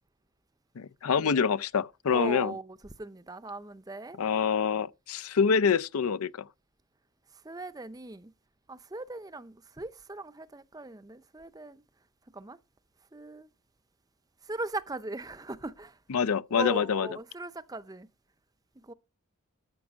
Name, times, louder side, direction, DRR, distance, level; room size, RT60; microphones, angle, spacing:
voice 1, 0.8-2.6 4.2-6.3 16.1-17.1, left 6 dB, 75° left, 0.5 m, -26 dB
voice 2, 2.1-4.2 7.4-8.3 8.7-11.8 12.3-12.6 13.1-13.5 14.5-15.9 16.5-18.1 18.9-19.0, right 2 dB, 15° right, 0.6 m, -39 dB
13.5 x 6.0 x 6.2 m
head